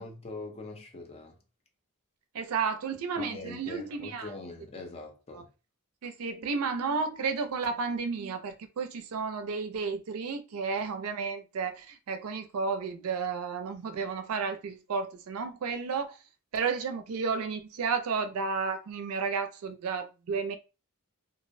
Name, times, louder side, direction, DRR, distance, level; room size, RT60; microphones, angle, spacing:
voice 1, 0.0-1.4 3.2-5.5, left 2 dB, 30° left, 0.5 m, -42 dB
voice 2, 2.3-4.3 5.3-5.4 6.0-16.2 16.5-20.6, right 5 dB, 85° right, 0.4 m, -32 dB
2.4 x 2.0 x 2.5 m
head